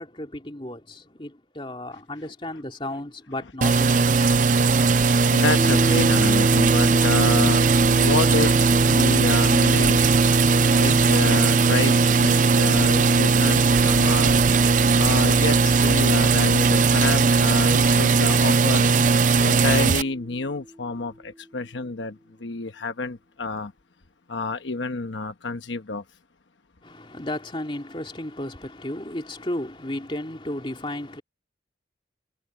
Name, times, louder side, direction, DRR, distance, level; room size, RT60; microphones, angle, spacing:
voice 1, 0.0-4.3 26.8-31.2, left 1 dB, 30° left, 2.9 m, -34 dB
sound 1, 3.6-20.0, right 4 dB, 40° right, 0.5 m, -18 dB
voice 2, 4.3-14.6 15.0-18.9 19.4-23.7 24.3-26.0, left 3 dB, 80° left, 1.1 m, -29 dB
sound 2, 5.6-21.1, equal, 5° right, 0.8 m, -31 dB
head